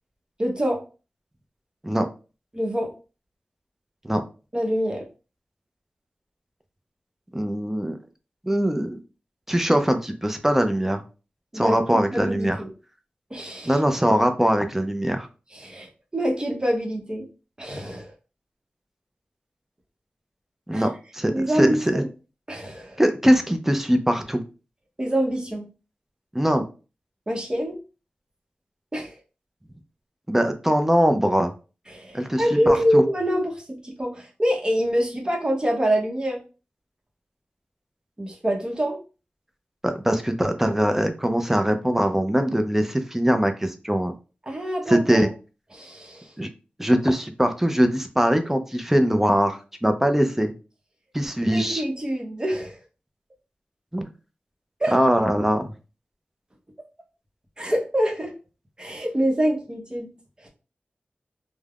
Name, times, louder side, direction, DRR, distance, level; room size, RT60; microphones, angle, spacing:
voice 1, 0.4-0.8 2.5-2.9 4.5-5.1 11.5-12.7 13.3-13.8 15.5-17.3 17.6-18.1 20.7-20.9 21.3-22.1 22.5-23.0 25.0-25.6 27.3-27.8 28.9-29.1 31.9-36.4 38.2-39.0 44.5-45.2 45.7-46.3 51.5-52.8 54.8-55.0 57.6-58.3 58.8-60.1 60.4-60.5, equal, 25° right, 1 dB, 0.8 m, -25 dB
voice 2, 7.3-8.0 8.4-9.0 9.5-11.0 11.5-12.6 13.7-15.3 20.7-22.1 23.0-24.4 26.3-26.7 30.3-31.5 32.1-33.0 39.8-44.1 44.9-45.3 46.4-46.5 46.8-50.5 51.1-51.8 53.9-54.1 54.9-55.7, equal, 10° right, 7 dB, 0.4 m, -22 dB
3.3 x 2.0 x 2.3 m, 0.33 s
wide cardioid pair, 60°, 3 cm